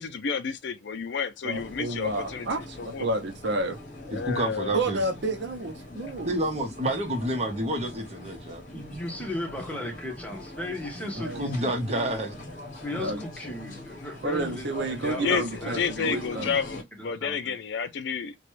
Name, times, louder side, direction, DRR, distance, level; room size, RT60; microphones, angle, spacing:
voice 1, 0.0-2.5 2.8-3.1 4.1-4.8 15.2-15.4 15.7-18.3, left 6 dB, 65° left, 0.4 m, -30 dB
voice 2, 1.4-3.8 4.7-6.4 11.2-11.4 13.0-13.2 14.2-16.5, right 2 dB, 65° right, 0.7 m, -30 dB
sound 1, 1.5-16.8, left 1 dB, 45° left, 0.9 m, -42 dB
voice 3, 4.1-5.0 6.3-8.6 11.4-12.4, right 1 dB, 35° right, 0.9 m, -29 dB
voice 4, 8.7-11.7 12.7-16.3 16.9-17.5, left 1 dB, 10° left, 1.0 m, -36 dB
2.9 x 2.3 x 3.0 m
head